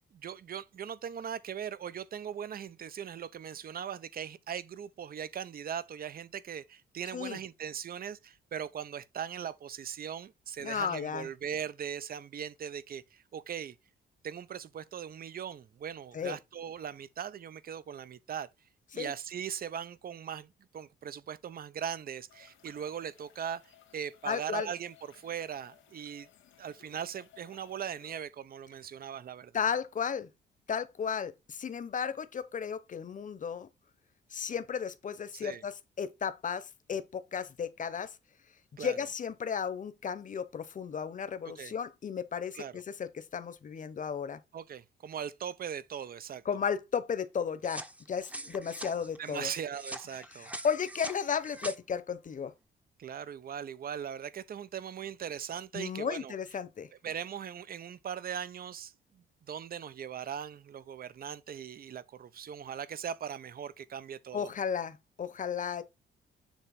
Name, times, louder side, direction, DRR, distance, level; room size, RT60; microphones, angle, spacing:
voice 1, 0.0-13.8 14.2-18.5 18.9-23.6 23.9-26.3 26.6-29.7 35.4-35.6 38.8-39.0 41.6-41.7 42.5-42.8 44.5-46.4 49.2-50.5 53.0-56.4 57.0-64.5, right 8 dB, 50° right, 0.7 m, -40 dB
voice 2, 10.6-11.3 16.1-16.4 18.9-19.1 24.2-24.7 29.5-30.3 30.7-33.7 34.3-38.2 38.8-44.4 46.4-49.5 50.3-52.5 55.7-56.9 64.3-65.8, left 7 dB, 40° left, 1.0 m, -34 dB
sound 1, 22.3-28.2, left 11 dB, 80° left, 1.8 m, -60 dB
sound 2, 47.6-51.8, right 1 dB, 5° right, 0.9 m, -43 dB
7.2 x 3.1 x 5.2 m
cardioid pair, 90°, 20 cm